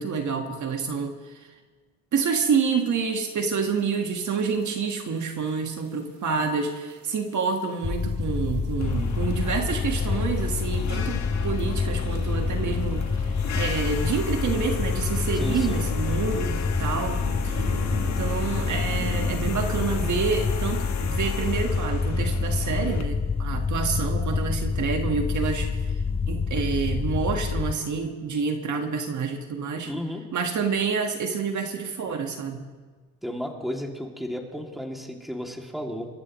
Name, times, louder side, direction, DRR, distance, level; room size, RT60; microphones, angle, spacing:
voice 1, 0.0-1.5 2.1-17.7 18.2-25.8 26.3-29.9 30.3-32.7, right 5 dB, 50° right, 4 dB, 1.7 m, -28 dB
sound 1, 2.9-21.5, right 4 dB, 75° right, 3.7 m, -43 dB
sound 2, 7.8-27.7, left 5 dB, 15° left, 0.7 m, -27 dB
sound 3, 8.8-23.0, left 4 dB, 45° left, 1.8 m, -33 dB
voice 2, 15.4-15.8 29.9-30.2 33.2-36.1, equal, ahead, 1 dB, 2.7 m, -33 dB
29.0 x 14.0 x 3.2 m, 1.4 s
supercardioid pair, 85°, 37 cm